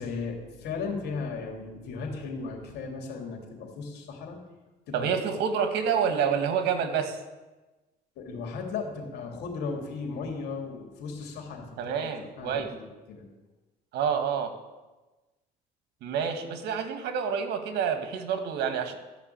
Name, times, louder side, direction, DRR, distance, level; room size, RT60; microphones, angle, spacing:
voice 1, 0.0-4.4 4.9-5.1 8.2-13.2, left 4 dB, 75° left, 2 dB, 3.1 m, -36 dB
voice 2, 4.9-7.2 11.8-12.7 13.9-14.5 16.0-18.9, right 7 dB, 80° right, 7 dB, 1.7 m, -28 dB
14.0 x 6.0 x 8.8 m, 1.2 s
cardioid pair, 110°, 17 cm